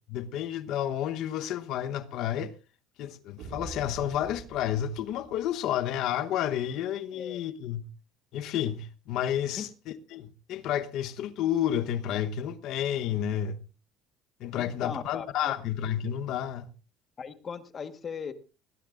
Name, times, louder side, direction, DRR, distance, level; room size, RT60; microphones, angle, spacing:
voice 1, 0.1-2.5 3.0-7.9 8.3-9.7 10.1-13.6 14.4-16.7, left 10 dB, 65° left, 1.0 m, -30 dB
sound 1, 3.4-6.0, right 5 dB, 60° right, 1.9 m, -45 dB
voice 2, 14.6-15.5 17.2-18.3, left 6 dB, 35° left, 1.3 m, -38 dB
19.0 x 17.5 x 2.5 m
cardioid pair, 120°, 0 cm